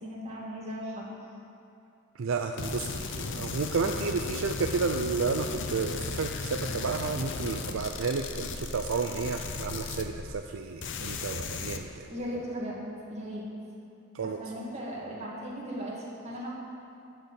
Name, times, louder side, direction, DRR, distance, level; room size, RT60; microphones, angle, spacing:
voice 1, 0.0-1.1 12.1-12.8 13.1-13.5 14.2-16.5, equal, 30° right, -5 dB, 2.2 m, -37 dB
voice 2, 2.2-12.1 14.1-14.4, right 4 dB, 65° right, 5 dB, 0.4 m, -31 dB
sound 1, 2.6-10.5 10.8-11.8, left 4 dB, 55° left, 0.6 m, -36 dB
12.0 x 4.6 x 8.1 m, 2.7 s
head